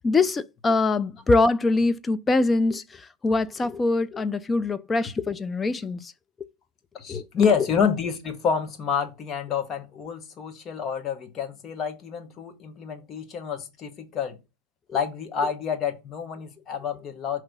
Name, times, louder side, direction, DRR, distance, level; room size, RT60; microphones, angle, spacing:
voice 1, 0.0-2.8 3.2-6.0 7.1-7.2 7.6-7.7 14.9-15.0, left 3 dB, 20° left, 0.5 m, -23 dB
voice 2, 6.9-14.3 14.9-17.4, left 6 dB, 35° left, 1.3 m, -28 dB
5.8 x 3.2 x 5.3 m
supercardioid pair, 115°, 0 cm